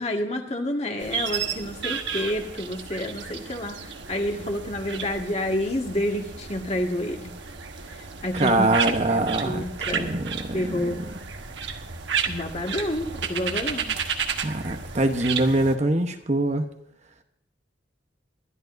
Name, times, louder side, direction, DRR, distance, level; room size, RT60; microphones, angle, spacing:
voice 1, 0.0-3.8 4.1-7.3 8.2-8.7 9.1-10.1 10.5-11.0 12.2-13.9, left 1 dB, 35° left, 1.8 m, -29 dB
sound 1, 1.0-15.8, right 6 dB, 65° right, 1.3 m, -33 dB
voice 2, 8.3-11.0 14.4-16.7, right 2 dB, 35° right, 0.9 m, -24 dB
23.5 x 11.5 x 2.6 m
head